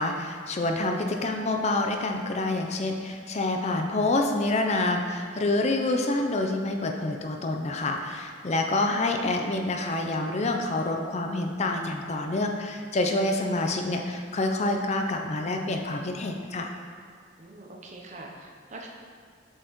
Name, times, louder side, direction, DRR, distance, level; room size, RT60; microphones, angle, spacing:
voice 1, 0.0-16.7, left 2 dB, 35° left, 3 dB, 0.5 m, -27 dB
voice 2, 17.4-18.9, right 2 dB, 40° right, 0 dB, 0.7 m, -44 dB
7.3 x 5.2 x 3.1 m, 2.1 s
head